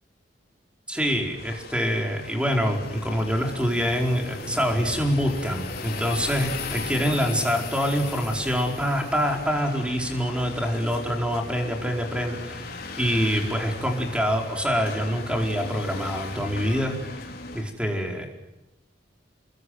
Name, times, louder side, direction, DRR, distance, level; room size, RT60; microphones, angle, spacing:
voice 1, 0.9-17.0 17.5-18.3, equal, 5° right, 2 dB, 4.7 m, -25 dB
sound 1, 1.0-17.6, left 3 dB, 55° left, 4.0 m, -37 dB
28.5 x 22.0 x 9.6 m, 0.96 s
head